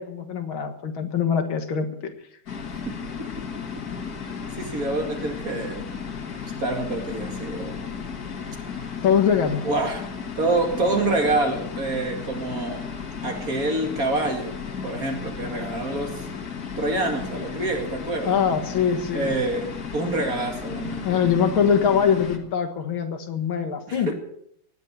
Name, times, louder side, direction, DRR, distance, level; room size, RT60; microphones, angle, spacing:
voice 1, 0.0-2.1 9.0-9.6 18.3-19.4 21.0-24.1, left 7 dB, 75° left, 5 dB, 2.3 m, -23 dB
sound 1, 2.5-22.4, left 6 dB, 45° left, 2.0 m, -34 dB
voice 2, 2.9-3.3 4.5-5.9 6.4-7.8 9.6-10.1 10.4-12.9 13.2-14.5 14.8-16.3 16.8-18.4 19.1-21.1 23.9-24.1, right 2 dB, 40° right, 4 dB, 2.6 m, -27 dB
18.0 x 8.3 x 8.2 m, 0.71 s
omnidirectional pair, 2.4 m